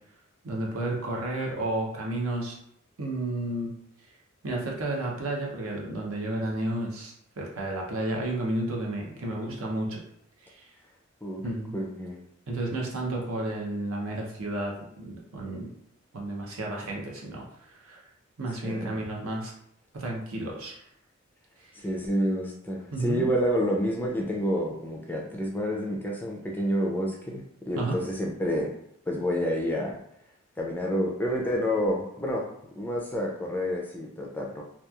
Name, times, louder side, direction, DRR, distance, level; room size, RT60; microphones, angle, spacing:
voice 1, 0.4-2.6 3.0-3.7 4.4-10.0 10.4-10.6 11.4-11.7 12.5-15.7 16.1-18.0 18.4-19.5 19.9-20.8 22.9-23.3 27.8-28.0, right 1 dB, 75° right, -1 dB, 0.7 m, -32 dB
voice 2, 11.7-12.2 18.6-18.9 21.8-28.7 29.1-29.9 30.6-32.4 32.8-34.6, equal, 10° left, -1 dB, 0.3 m, -29 dB
2.9 x 2.3 x 2.3 m, 0.73 s
head